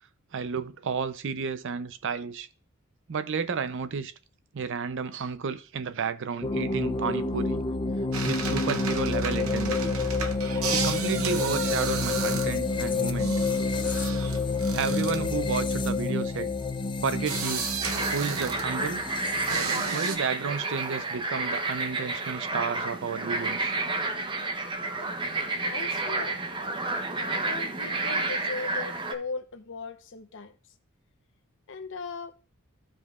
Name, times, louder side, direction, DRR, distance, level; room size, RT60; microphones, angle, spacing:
voice 1, 0.3-2.5 3.1-4.1 4.5-7.6 8.2-9.9 10.7-13.4 14.7-16.5 17.0-17.7 18.1-19.0 19.9-23.7, right 5 dB, 60° right, 0.5 m, -32 dB
sound 1, 6.4-20.0, left 3 dB, 25° left, 0.5 m, -29 dB
sound 2, 8.1-19.0 19.5-20.2, right 6 dB, 90° right, 0.8 m, -34 dB
sound 3, 17.8-29.1, right 2 dB, 25° right, 0.7 m, -30 dB
voice 2, 25.6-26.4 27.2-30.5 31.7-32.3, left 4 dB, 60° left, 0.8 m, -38 dB
14.0 x 5.1 x 2.4 m
head